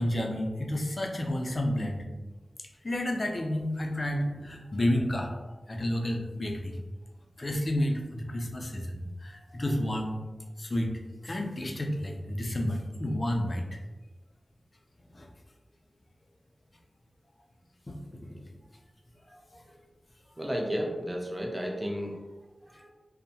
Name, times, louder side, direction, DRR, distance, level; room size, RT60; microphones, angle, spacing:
voice 1, 0.0-2.0 2.8-5.4 5.7-6.8 7.4-10.2 10.6-10.9 11.2-13.6 15.1-15.3 17.9-18.0 18.3-18.5 19.3-19.6, left 1 dB, 50° left, 2 dB, 0.5 m, -30 dB
voice 2, 20.4-22.2 22.6-22.9, equal, 25° right, 0 dB, 0.5 m, -33 dB
2.6 x 2.1 x 2.7 m, 1.2 s
cardioid pair, 45°, 0 cm